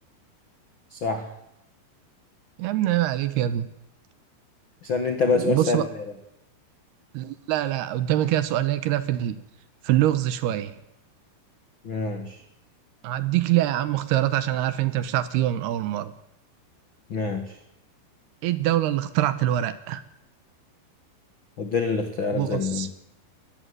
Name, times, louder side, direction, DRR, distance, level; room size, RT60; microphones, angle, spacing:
voice 1, 0.9-1.3 4.8-6.0 11.8-12.4 17.1-17.6 21.6-22.9, left 4 dB, 85° left, 7 dB, 1.0 m, -26 dB
voice 2, 2.6-3.7 5.3-5.8 7.1-9.4 9.8-10.8 13.0-16.1 18.4-20.0 22.3-22.9, right 13 dB, 75° right, 15 dB, 2.7 m, -24 dB
20.5 x 14.5 x 9.5 m, 0.83 s
omnidirectional pair, 5.2 m